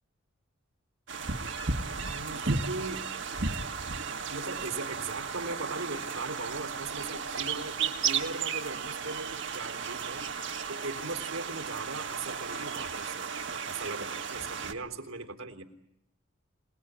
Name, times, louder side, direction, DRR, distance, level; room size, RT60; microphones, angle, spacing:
sound 1, 1.1-14.7, right 5 dB, 60° right, 1.8 m, -34 dB
voice 1, 2.1-3.6 4.3-15.6, right 3 dB, 85° right, 4 dB, 3.8 m, -39 dB
27.0 x 20.0 x 9.6 m, 0.81 s
head